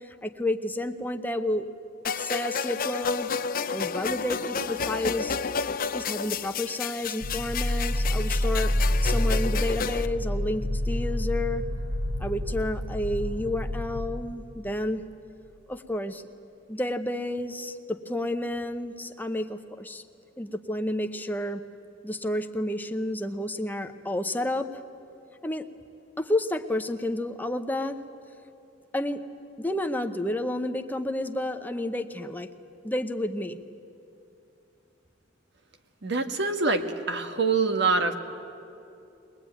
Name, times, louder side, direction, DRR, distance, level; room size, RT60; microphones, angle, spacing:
voice 1, 0.2-1.7 2.0-3.3 3.7-5.4 5.9-8.7 9.0-11.6 12.2-15.0 15.7-16.2 16.7-20.0 20.4-21.6 22.0-24.7 25.4-25.6 26.2-28.0 28.9-29.2 29.6-32.5 32.8-33.6, left 1 dB, 10° left, 6 dB, 0.8 m, -30 dB
sound 1, 2.0-10.1, left 6 dB, 50° left, 0.6 m, -31 dB
sound 2, 7.2-14.1, left 1 dB, 40° right, 6.1 m, -28 dB
voice 2, 36.0-38.1, right 4 dB, 60° right, 7 dB, 1.5 m, -25 dB
22.5 x 20.0 x 9.1 m, 2.7 s
head